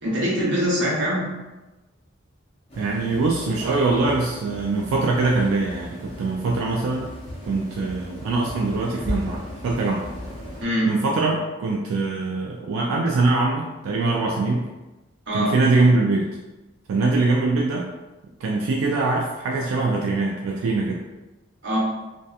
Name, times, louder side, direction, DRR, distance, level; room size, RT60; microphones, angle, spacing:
voice 1, 0.0-1.2 10.6-10.9 15.3-15.5 21.6-21.8, equal, 60° right, -6 dB, 0.9 m, -23 dB
sound 1, 2.7-10.6, left 1 dB, 30° left, 0.5 m, -36 dB
voice 2, 2.8-7.1 7.5-10.0 10.9-14.7 15.3-16.3 16.9-17.9 18.4-21.0, right 3 dB, 90° right, -1 dB, 0.3 m, -23 dB
2.7 x 2.2 x 2.3 m, 1.1 s
head